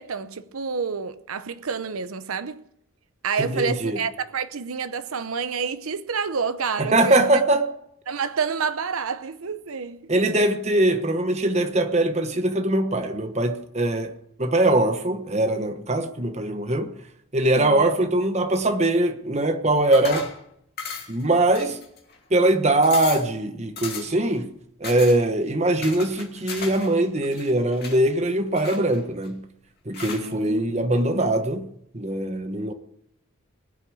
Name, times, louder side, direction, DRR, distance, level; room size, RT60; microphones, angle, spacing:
voice 1, 0.0-2.6 3.2-7.2 8.1-10.1 17.5-17.9 30.2-30.9, right 5 dB, 85° right, 0.7 m, -29 dB
voice 2, 3.4-4.0 6.8-7.7 10.1-16.9 17.3-20.3 21.1-21.8 22.3-24.5 24.8-29.4 29.9-31.7 31.9-32.7, right 1 dB, 30° right, 1.1 m, -22 dB
sound 1, 19.9-20.4 20.8-21.2 21.5-22.2 22.5-22.6 22.8-23.3 23.8-24.2 24.8-25.2 25.8-26.9 27.2-28.0 28.5-29.3 29.9-30.3, left 5 dB, 50° left, 2.4 m, -35 dB
20.0 x 6.8 x 8.7 m
head